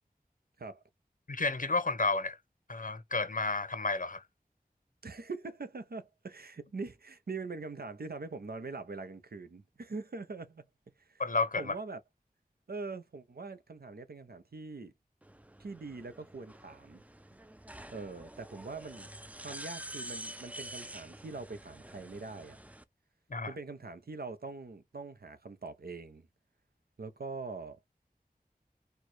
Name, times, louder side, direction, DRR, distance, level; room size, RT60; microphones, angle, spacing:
voice 1, 1.3-2.4 2.7-4.2 11.2-11.7 23.3-23.5, left 3 dB, 60° left, 0.8 m, -31 dB
voice 2, 5.0-10.6 11.0-11.2 11.6-12.0 12.7-14.9 15.6-17.0 17.9-19.1 19.4-22.6 23.5-26.3 27.0-27.8, right 3 dB, 80° right, 0.7 m, -43 dB
sound 1, 15.2-22.8, right 1 dB, 10° right, 0.4 m, -47 dB
4.5 x 2.2 x 4.6 m
wide cardioid pair, 45°, 16 cm